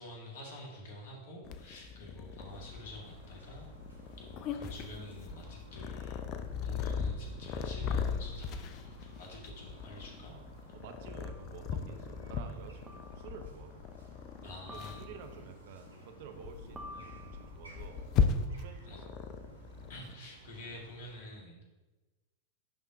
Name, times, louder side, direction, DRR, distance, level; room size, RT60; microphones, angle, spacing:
voice 1, 0.0-3.7 4.2-6.2 6.6-10.3 14.4-15.0 18.9-19.0 19.9-21.7, left 1 dB, 55° left, -1 dB, 1.6 m, -48 dB
Purr, 1.4-20.1, left 6 dB, 40° left, 0.4 m, -38 dB
sound 1, 2.4-21.1, right 2 dB, 80° right, 1.1 m, -56 dB
voice 2, 10.7-14.0 14.4-18.0 18.6-19.1, right 6 dB, 50° right, 7 dB, 0.6 m, -51 dB
sound 2, 11.2-11.6 12.9-13.4 14.7-15.5 16.8-17.7, equal, 10° right, 0.9 m, -50 dB
10.5 x 3.6 x 2.7 m, 1.2 s
figure-of-eight pair, 90°, 0 cm